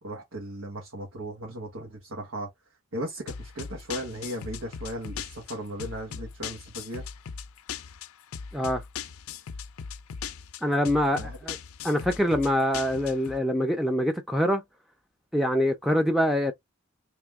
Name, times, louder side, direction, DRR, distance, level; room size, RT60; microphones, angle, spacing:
voice 1, 0.0-2.5 2.9-7.0 11.2-11.4, right 1 dB, 85° right, 1.5 m, -36 dB
sound 1, 3.3-13.4, left 6 dB, 90° left, 0.5 m, -39 dB
voice 2, 10.6-11.6 11.8-14.6 15.3-16.5, equal, ahead, 0.4 m, -24 dB
3.3 x 3.0 x 3.5 m
head